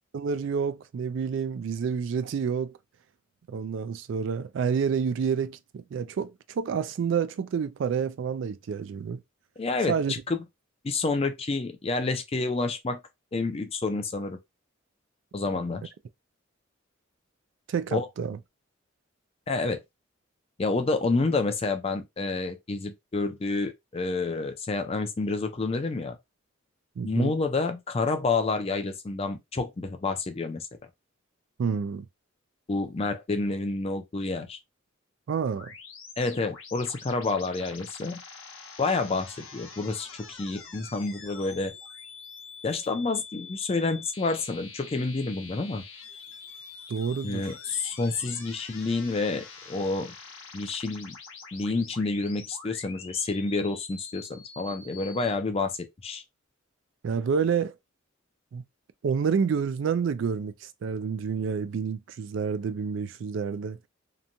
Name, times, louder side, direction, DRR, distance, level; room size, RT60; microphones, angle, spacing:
voice 1, 0.1-2.8 3.5-9.2 9.9-10.1 17.7-18.4 27.0-27.3 31.6-32.1 35.3-35.7 46.9-47.5 57.0-57.7 58.5-58.6 59.0-63.8, right 6 dB, 65° right, 0.3 m, -29 dB
voice 2, 9.6-10.4 10.8-13.0 13.3-14.4 15.3-15.8 17.9-18.1 19.5-19.8 20.6-26.2 27.0-30.7 32.7-34.6 36.2-38.2 38.8-41.7 42.6-45.8 47.2-50.1 50.5-51.2 51.5-55.8 56.0-56.2, left 3 dB, 30° left, 0.4 m, -29 dB
sound 1, 35.6-55.3, left 5 dB, 80° left, 0.8 m, -46 dB
2.9 x 2.2 x 2.5 m
head